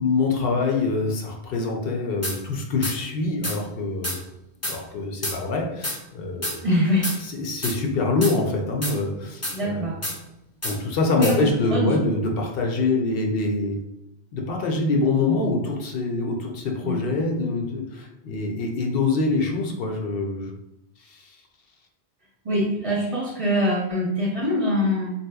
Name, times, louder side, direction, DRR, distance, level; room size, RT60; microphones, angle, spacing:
voice 1, 0.0-4.2 4.6-6.6 7.2-9.8 10.6-13.8 14.3-20.5 21.0-21.4, left 3 dB, 70° left, 1 dB, 0.7 m, -25 dB
sound 1, 2.2-2.4 2.8-3.0 3.4-3.6 4.0-4.2 4.6-4.8 5.2-5.4 5.8-6.0 6.4-6.6 7.0-7.2 7.6-7.8 8.2-8.4 8.8-9.0 9.4-9.6 10.0-10.2 10.6-10.8 11.2-11.4, left 1 dB, 20° left, 0.4 m, -28 dB
voice 2, 6.6-7.1 9.5-10.0 11.2-11.9 16.8-17.0 22.4-25.1, equal, 40° right, -4 dB, 0.6 m, -23 dB
3.4 x 2.8 x 2.2 m, 0.86 s
omnidirectional pair, 1.0 m